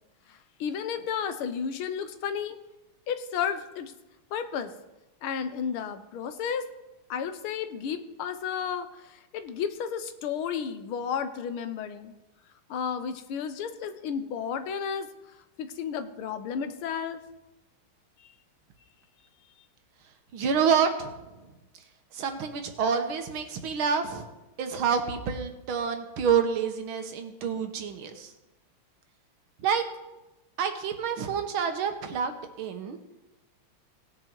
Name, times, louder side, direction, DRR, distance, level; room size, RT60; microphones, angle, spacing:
voice 1, 0.3-2.6 3.1-3.9 4.3-4.7 5.2-6.7 7.1-12.1 12.7-15.1 15.6-17.2, left 7 dB, 85° left, 10 dB, 1.7 m, -32 dB
voice 2, 20.3-21.1 22.1-24.3 24.6-28.3 29.6-29.8 30.6-33.0, right 6 dB, 80° right, 7 dB, 1.9 m, -28 dB
17.5 x 6.5 x 4.6 m, 1.0 s
omnidirectional pair, 2.3 m